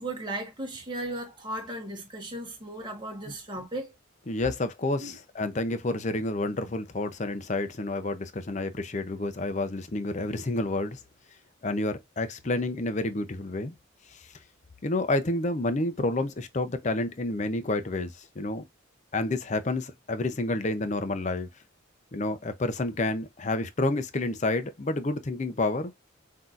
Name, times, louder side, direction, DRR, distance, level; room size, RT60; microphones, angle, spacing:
voice 1, 0.0-3.9 5.0-5.1, right 1 dB, 20° right, 1.3 m, -36 dB
voice 2, 4.3-11.0 11.6-13.7 14.1-14.2 14.8-18.6 19.1-21.5 22.1-25.9, left 2 dB, 35° left, 0.6 m, -29 dB
5.9 x 2.8 x 2.4 m
head